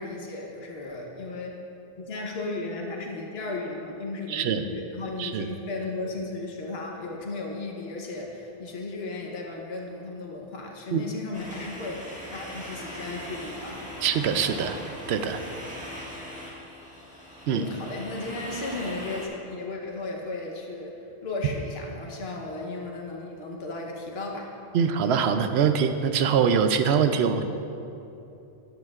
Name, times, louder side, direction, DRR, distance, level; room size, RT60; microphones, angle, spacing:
voice 1, 0.0-1.6 2.0-13.8 17.5-24.5, left 2 dB, 75° left, 0 dB, 1.3 m, -35 dB
voice 2, 4.3-4.6 5.2-5.5 10.9-11.0 14.0-14.8 15.1-15.4 15.7-15.9 17.5-17.6 24.7-27.4, right 7 dB, 80° right, 8 dB, 0.8 m, -23 dB
sound 1, 11.3-19.3, equal, 5° right, 1.6 m, -40 dB
13.0 x 9.1 x 2.4 m, 2.9 s
omnidirectional pair, 1.1 m